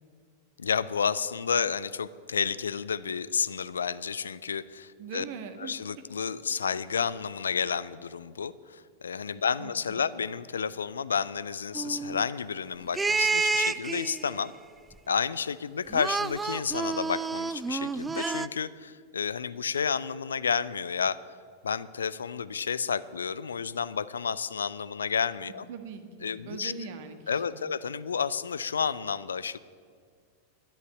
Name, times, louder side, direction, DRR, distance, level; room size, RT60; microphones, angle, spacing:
voice 1, 0.6-5.2 5.6-14.5 15.1-21.2 21.6-25.7 26.2-26.7 27.3-29.6, left 6 dB, 70° left, 17 dB, 0.4 m, -31 dB
voice 2, 5.0-5.8 9.6-10.1 25.7-27.7, right 5 dB, 50° right, 8 dB, 1.4 m, -41 dB
sound 1, 11.7-12.3 12.9-14.4 15.9-18.5, right 4 dB, 15° right, 0.4 m, -29 dB
11.0 x 10.5 x 8.8 m, 2.1 s
figure-of-eight pair, 90°, 0 cm